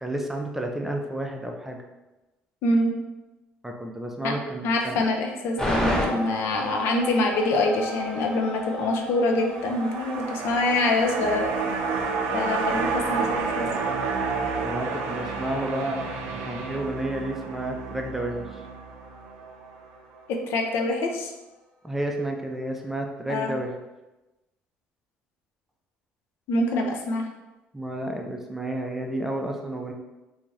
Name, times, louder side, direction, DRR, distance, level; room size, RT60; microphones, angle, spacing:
voice 1, 0.0-1.8 3.6-5.0 14.6-16.1 16.4-18.5 21.8-23.8 27.7-29.9, right 1 dB, 5° right, 2 dB, 0.4 m, -31 dB
voice 2, 2.6-2.9 4.2-4.3 4.6-11.5 12.3-13.7 20.3-21.3 23.3-23.5 26.5-27.2, left 2 dB, 75° left, 3 dB, 0.4 m, -25 dB
sound 1, 5.6-19.9 20.2-20.3, equal, 15° left, 1.0 m, -35 dB
sound 2, 9.5-19.9 20.2-20.3, right 4 dB, 85° right, 0.4 m, -30 dB
2.6 x 2.4 x 3.1 m, 1.0 s
cardioid pair, 105°, 4 cm